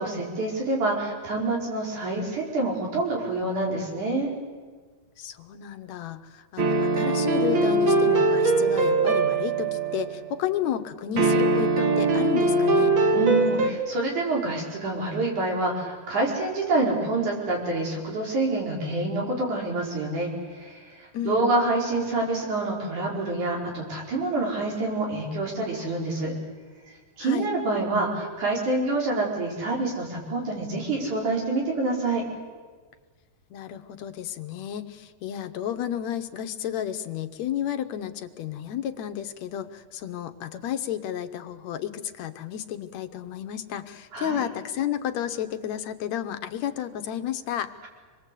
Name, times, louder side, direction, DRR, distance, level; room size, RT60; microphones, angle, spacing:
voice 1, 0.0-4.3 13.1-26.3 27.2-32.2 44.1-44.5, right 2 dB, 90° right, -2 dB, 6.3 m, -27 dB
voice 2, 5.2-12.9 21.1-21.4 27.2-27.5 33.5-47.7, left 10 dB, 75° left, 9 dB, 2.2 m, -32 dB
sound 1, 6.6-10.3 11.2-13.7, right 2 dB, 45° right, 2.0 m, -22 dB
26.0 x 21.0 x 8.4 m, 1.5 s
omnidirectional pair, 3.3 m